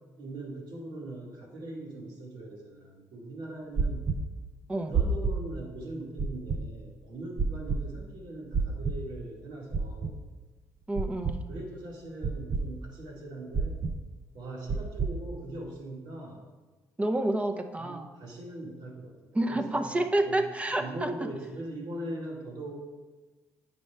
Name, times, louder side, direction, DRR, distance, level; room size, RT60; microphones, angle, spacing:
voice 1, 0.2-4.1 4.9-10.2 11.5-13.8 14.3-16.4 17.8-19.1 19.5-20.0 20.2-20.4 20.7-22.7, right 1 dB, 75° right, -1 dB, 1.7 m, -41 dB
sound 1, 3.8-4.2 4.9-5.4 6.2-6.6 7.4-7.8 8.5-9.0 9.7-10.1 11.0-11.4 12.2-12.6 13.5-13.9 14.7-15.1, right 5 dB, 45° right, 0.6 m, -27 dB
voice 2, 10.9-11.4 17.0-18.1 19.3-21.1, right 1 dB, 20° right, 6 dB, 0.8 m, -29 dB
9.1 x 5.5 x 3.4 m, 1.3 s
supercardioid pair, 70°, 7 cm